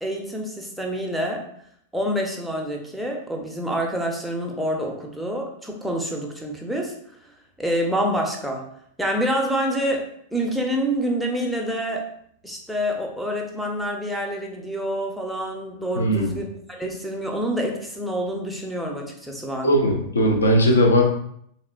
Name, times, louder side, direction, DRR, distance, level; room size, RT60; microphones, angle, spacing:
voice 1, 0.0-1.4 1.9-6.9 7.6-8.6 9.0-12.1 12.4-19.7, equal, ahead, 0 dB, 0.6 m, -27 dB
voice 2, 15.9-16.4 19.6-21.0, equal, 75° left, 1 dB, 0.6 m, -18 dB
3.5 x 2.4 x 2.3 m, 0.67 s
figure-of-eight pair, 90°, 0 cm